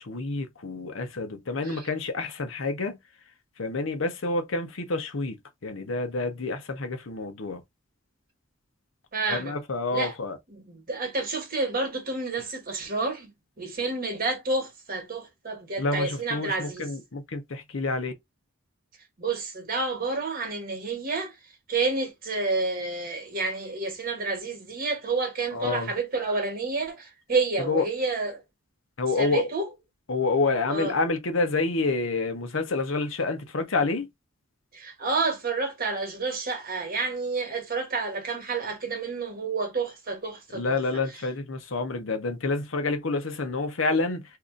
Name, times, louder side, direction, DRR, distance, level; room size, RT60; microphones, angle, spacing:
voice 1, 0.0-3.0 3.6-5.4 5.6-7.6 9.3-10.4 15.8-18.1 25.5-25.9 27.6-27.8 29.0-29.5 30.1-34.1 40.5-44.2, left 3 dB, 70° left, 0.8 m, -28 dB
voice 2, 9.1-9.6 9.9-10.1 10.5-13.3 13.6-16.9 19.2-21.3 21.7-28.4 29.2-29.7 30.7-31.0 34.7-40.8, right 3 dB, 45° right, 1.3 m, -29 dB
2.7 x 2.5 x 3.8 m
head